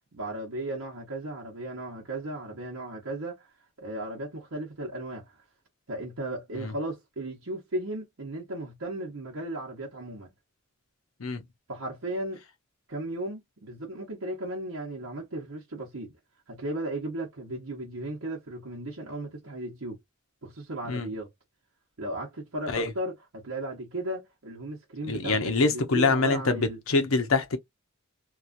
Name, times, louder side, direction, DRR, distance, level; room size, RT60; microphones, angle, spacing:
voice 1, 0.1-3.5 3.8-5.4 5.9-10.3 11.7-12.4 12.9-16.1 16.5-20.0 20.4-21.3 22.0-26.8, right 1 dB, 90° right, 1.0 m, -35 dB
voice 2, 25.1-27.6, left 3 dB, 80° left, 0.8 m, -25 dB
2.9 x 2.3 x 2.5 m
head